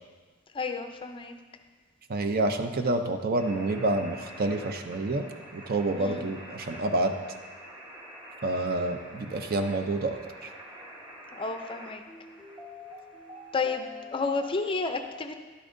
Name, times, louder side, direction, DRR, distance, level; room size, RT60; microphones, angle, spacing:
voice 1, 0.5-1.3 5.9-6.3 11.3-12.0 13.5-15.3, left 4 dB, 25° left, 7 dB, 0.4 m, -31 dB
voice 2, 2.1-5.2 5.5-7.1 8.4-10.2, right 2 dB, 50° right, 6 dB, 0.6 m, -28 dB
sound 1, 3.4-14.7, equal, 25° right, 1.2 m, -46 dB
11.0 x 8.6 x 2.6 m, 1.4 s
head